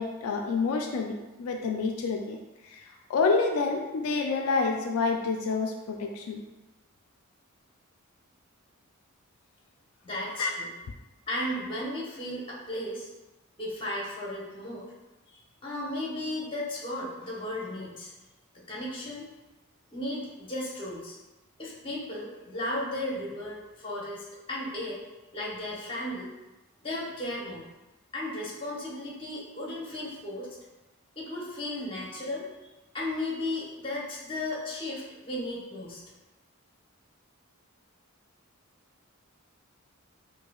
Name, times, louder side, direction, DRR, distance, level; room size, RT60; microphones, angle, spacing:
voice 1, 0.0-6.4 10.4-10.5, left 4 dB, 80° left, 2 dB, 0.3 m, -28 dB
voice 2, 10.0-10.7 11.3-13.1 13.6-14.9 15.3-18.1 18.5-19.3 19.9-21.2 21.6-25.0 25.3-26.3 26.8-27.6 28.1-30.5 31.1-32.5 32.9-36.0, left 1 dB, 25° left, -4 dB, 0.9 m, -35 dB
4.7 x 2.6 x 2.3 m, 1.1 s
head